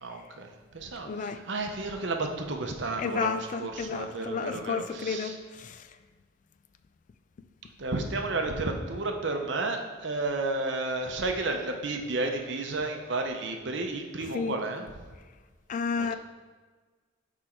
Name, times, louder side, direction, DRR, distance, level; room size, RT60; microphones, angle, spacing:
voice 1, 0.0-5.4 7.8-14.9 16.0-16.2, right 2 dB, 65° right, 4 dB, 0.8 m, -32 dB
voice 2, 1.0-1.4 3.0-5.8 14.3-14.6 15.7-16.2, left 5 dB, 40° left, 10 dB, 0.3 m, -32 dB
6.1 x 5.0 x 4.4 m, 1.4 s
head